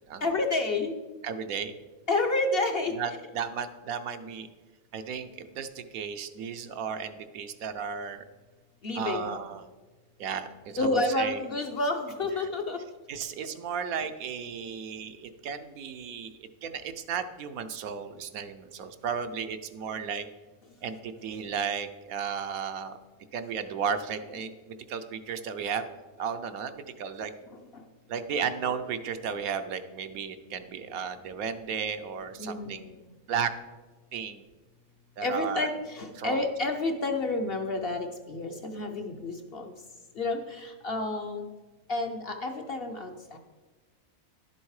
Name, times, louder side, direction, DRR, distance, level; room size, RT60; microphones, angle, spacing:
voice 1, 0.2-0.9 2.1-2.9 8.8-9.4 10.8-12.8 32.4-32.9 35.2-39.7 40.2-41.5 41.9-43.4, left 2 dB, 50° left, 4 dB, 0.8 m, -30 dB
voice 2, 1.2-1.7 2.9-4.5 4.9-8.2 8.9-9.6 10.2-11.4 12.4-12.5 13.1-16.3 16.6-20.3 20.8-23.0 23.3-25.9 26.2-27.3 28.1-32.8 33.3-33.5 34.1-34.4 35.2-35.7 36.2-36.5, right 7 dB, 75° right, 8 dB, 1.1 m, -34 dB
11.5 x 7.2 x 4.8 m, 1.3 s
omnidirectional pair, 1.5 m